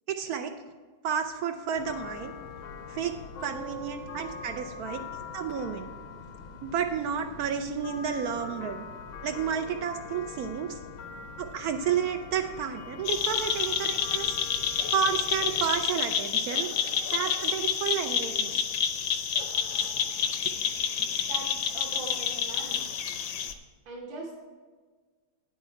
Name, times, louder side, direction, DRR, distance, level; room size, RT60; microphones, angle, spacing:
voice 1, 0.1-0.5 1.0-2.3 2.9-3.1 3.4-5.0 5.3-5.9 6.6-8.9 9.2-10.8 11.4-14.3 14.9-16.7 17.1-18.6, right 7 dB, 90° right, 6 dB, 0.8 m, -31 dB
sound 1, 1.7-15.8, left 5 dB, 85° left, 1.6 m, -43 dB
sound 2, 13.1-23.5, left 7 dB, 70° left, 1.0 m, -29 dB
voice 2, 21.3-22.9 23.9-24.3, right 2 dB, 70° right, -3 dB, 1.9 m, -41 dB
9.2 x 7.9 x 4.5 m, 1.5 s
omnidirectional pair, 2.2 m